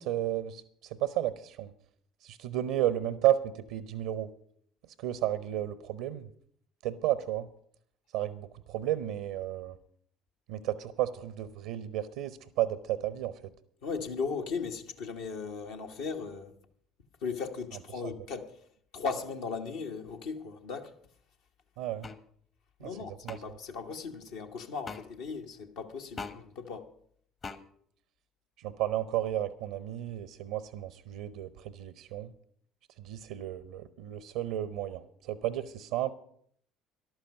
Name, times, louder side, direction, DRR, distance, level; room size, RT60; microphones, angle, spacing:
voice 1, 0.0-1.7 2.2-4.3 5.0-6.3 6.8-7.5 8.1-9.8 10.5-13.5 21.8-22.1 22.8-22.9 23.2-23.4 28.6-32.3 33.0-36.1, right 12 dB, 65° right, 0.6 m, -32 dB
voice 2, 13.8-16.5 17.2-18.6 18.9-20.9 22.8-26.9, left 5 dB, 65° left, 1.3 m, -37 dB
sound 1, 22.0-22.2 23.3-23.4 24.8-25.0 26.2-26.4 27.4-27.6, left 4 dB, 35° left, 1.2 m, -39 dB
14.0 x 11.5 x 5.4 m
figure-of-eight pair, 55°, 0 cm